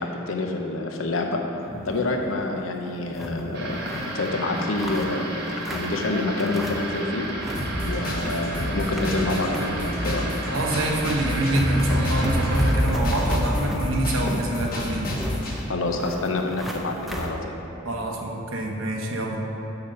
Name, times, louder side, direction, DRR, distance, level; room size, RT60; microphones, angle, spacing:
voice 1, 0.0-1.4 1.8-3.8 4.1-7.2 7.8-10.3 15.7-17.6, left 2 dB, 90° left, 2 dB, 0.8 m, -27 dB
sound 1, 1.6-2.1 2.5-2.6 2.9-4.1 4.6-6.0 6.4-7.0 7.2-7.7 8.0-9.6 10.0-10.2 10.9-11.0 11.2-17.3, equal, ahead, 0.6 m, -30 dB
sound 2, 3.5-12.7, right 1 dB, 55° right, 1.2 m, -32 dB
sound 3, 7.5-15.5, equal, 45° left, 1.2 m, -30 dB
voice 2, 10.5-15.1 17.8-19.4, right 1 dB, 85° right, 0 dB, 1.0 m, -26 dB
7.1 x 5.1 x 6.5 m, 2.9 s
head